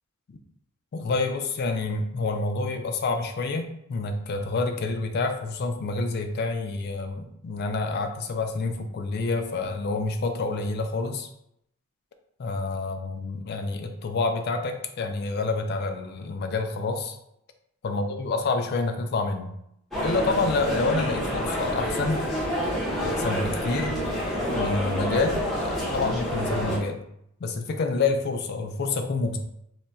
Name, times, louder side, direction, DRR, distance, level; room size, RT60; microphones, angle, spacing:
voice 1, 0.9-11.3 12.4-17.2 17.8-19.5 20.0-22.2 23.0-24.0 24.5-27.0 27.4-29.4, left 3 dB, 45° left, 5 dB, 0.3 m, -28 dB
sound 1, 19.9-26.8, equal, ahead, 0.6 m, -28 dB
2.3 x 2.1 x 3.9 m, 0.77 s
head